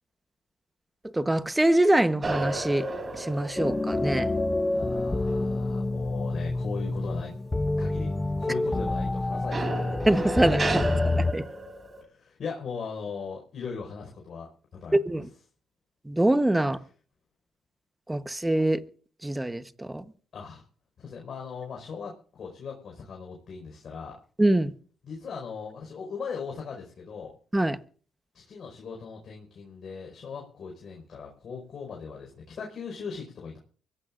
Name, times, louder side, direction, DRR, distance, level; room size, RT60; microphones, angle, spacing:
voice 1, 1.1-2.9 3.1-4.3 10.1-11.4 14.9-15.3 16.1-16.8 18.1-18.8 19.2-20.0 24.4-24.7 27.5-27.8, right 1 dB, 10° right, 1.0 m, -24 dB
sound 1, 2.2-7.1 7.5-7.9 9.5-12.0, right 2 dB, 30° right, 3.3 m, -34 dB
sound 2, 3.6-11.3, left 2 dB, 15° left, 0.6 m, -28 dB
voice 2, 4.7-7.3 7.8-9.8 12.1-14.5 14.8-15.0 20.3-20.6 21.0-24.2 25.0-27.3 28.3-33.6, left 5 dB, 55° left, 4.9 m, -38 dB
24.0 x 15.5 x 2.6 m
cardioid pair, 90°, 0 cm